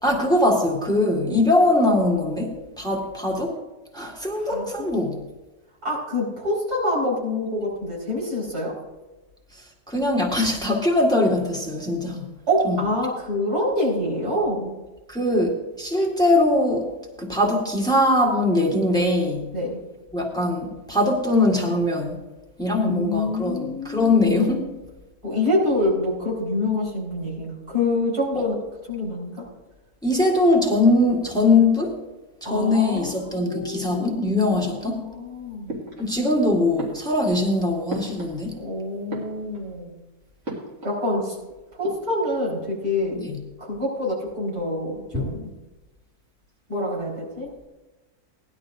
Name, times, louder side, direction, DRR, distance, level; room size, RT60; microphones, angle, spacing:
voice 1, 0.0-3.5 3.9-5.2 9.6-12.2 12.6-12.8 15.1-16.9 17.2-19.5 20.1-22.2 22.6-24.7 28.3-28.4 30.0-31.9 32.4-35.0 36.0-38.5 43.1-43.4 45.1-45.3, left 2 dB, 5° left, 0 dB, 1.6 m, -21 dB
voice 2, 4.3-4.9 5.8-8.8 12.5-14.7 19.5-19.8 22.8-24.6 25.2-28.6 28.9-29.4 32.4-35.7 38.6-40.0 40.8-41.4 41.7-43.3 43.6-45.5 46.7-47.5, left 1 dB, 90° right, -6 dB, 5.2 m, -26 dB
sound 1, 35.7-36.4 36.8-38.7 39.0-39.8 40.4-41.1 41.3-41.4 41.7-42.4, right 1 dB, 60° right, 2.9 m, -37 dB
18.0 x 11.5 x 2.6 m, 1.1 s
omnidirectional pair, 1.6 m